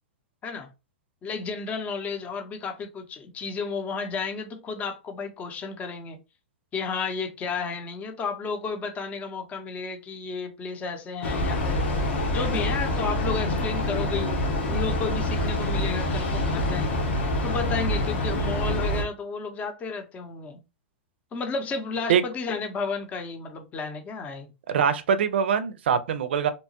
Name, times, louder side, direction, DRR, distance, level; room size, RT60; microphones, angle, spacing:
voice 1, 1.2-6.2 6.7-11.8 12.3-17.0 17.4-20.6 21.3-24.5, left 4 dB, 25° left, 0.6 m, -32 dB
Train, 11.2-19.0, left 1 dB, 75° left, 1.1 m, -26 dB
voice 2, 24.7-26.5, right 7 dB, 75° right, 0.4 m, -23 dB
2.8 x 2.2 x 2.7 m
hypercardioid pair, 120°, 6 cm